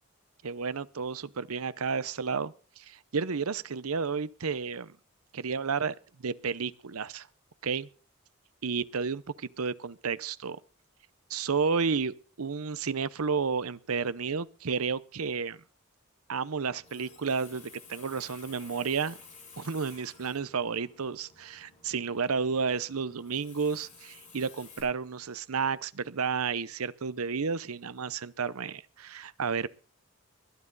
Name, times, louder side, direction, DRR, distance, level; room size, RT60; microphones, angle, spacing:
voice 1, 0.4-4.9 5.3-7.3 7.6-7.9 8.6-10.6 11.3-15.6 16.3-19.2 19.6-29.7, right 5 dB, 90° right, 0.7 m, -32 dB
Water tap faucet, 16.6-24.8, left 5 dB, 35° left, 7.6 m, -53 dB
21.0 x 11.0 x 4.0 m
head